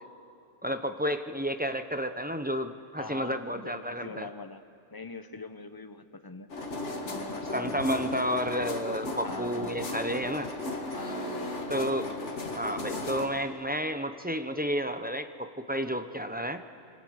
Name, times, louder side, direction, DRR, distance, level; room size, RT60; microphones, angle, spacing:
voice 1, 0.6-4.3 7.5-10.5 11.7-12.1 12.6-16.6, equal, 10° right, 8 dB, 0.7 m, -31 dB
voice 2, 3.0-4.6 4.9-6.5 7.0-7.9 9.2-9.9 10.9-11.5, left 3 dB, 20° left, 9 dB, 0.8 m, -43 dB
sound 1, 6.5-13.3, left 2 dB, 60° left, 2.2 m, -35 dB
26.0 x 25.0 x 6.5 m, 2.7 s
omnidirectional pair, 1.3 m